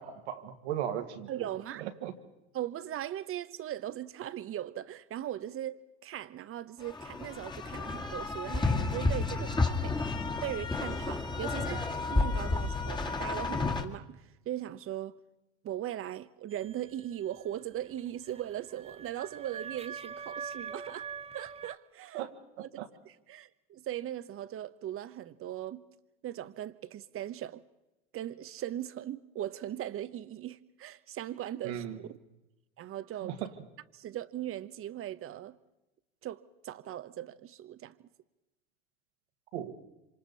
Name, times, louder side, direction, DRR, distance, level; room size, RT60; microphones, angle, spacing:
voice 1, 0.0-1.5 1.8-2.1 22.1-22.3 22.8-22.9 31.6-32.0 33.2-33.5 39.5-39.7, right 10 dB, 70° right, 2.1 m, -37 dB
voice 2, 1.3-1.8 2.5-10.0 10.4-15.2 15.6-21.1 21.3-22.3 22.6-22.7 23.0-25.8 26.2-27.6 28.1-32.2 32.8-33.3 33.9-35.6 36.2-38.0, right 12 dB, 40° right, 1.1 m, -39 dB
sound 1, 6.8-13.8, left 3 dB, 15° left, 2.1 m, -31 dB
sound 2, 16.5-21.8, right 6 dB, 15° right, 1.0 m, -44 dB
26.5 x 26.5 x 4.2 m
hypercardioid pair, 80°, 34 cm